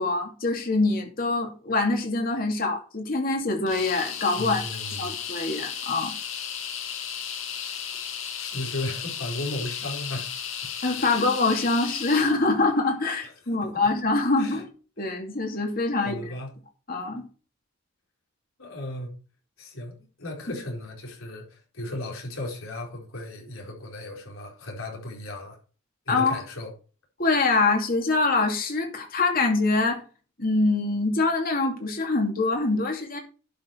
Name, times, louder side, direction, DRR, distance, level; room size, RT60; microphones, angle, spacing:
voice 1, 0.0-4.6 5.0-6.1 10.8-14.7 15.0-16.1 16.9-17.2 26.1-26.4 27.2-30.0 30.4-33.2, left 3 dB, 45° left, 2.7 m, -24 dB
sound 1, 3.7-12.3, left 8 dB, 70° left, 2.5 m, -34 dB
voice 2, 4.3-5.2 8.4-10.4 11.0-11.2 13.2-13.7 14.4-14.6 15.0-15.1 16.0-16.5 18.6-19.2 19.6-25.6 26.1-26.7, left 1 dB, 85° left, 4.7 m, -36 dB
11.5 x 6.4 x 4.7 m
head